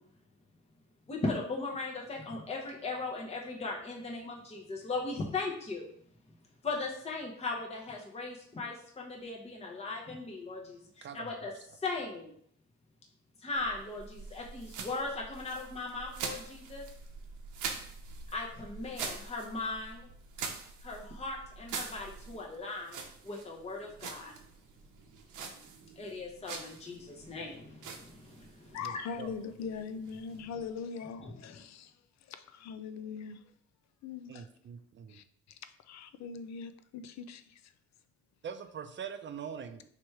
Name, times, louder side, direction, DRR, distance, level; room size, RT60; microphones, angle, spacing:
voice 1, 1.1-5.9 6.6-11.5 11.8-12.3 13.4-16.8 18.3-20.1 20.8-23.0 23.2-24.3 26.0-28.8 31.2-31.3, left 3 dB, 20° left, 0.8 m, -38 dB
voice 2, 11.0-11.5 28.8-28.9 29.2-29.3 34.3-35.2 38.4-39.8, right 7 dB, 40° right, 0.5 m, -43 dB
sound 1, 13.6-30.8, right 5 dB, 85° right, 0.8 m, -45 dB
voice 3, 28.7-31.9 32.2-33.4 34.0-34.5 35.1-37.7, left 6 dB, 65° left, 0.5 m, -42 dB
3.3 x 3.0 x 4.6 m
cardioid pair, 90°, 30 cm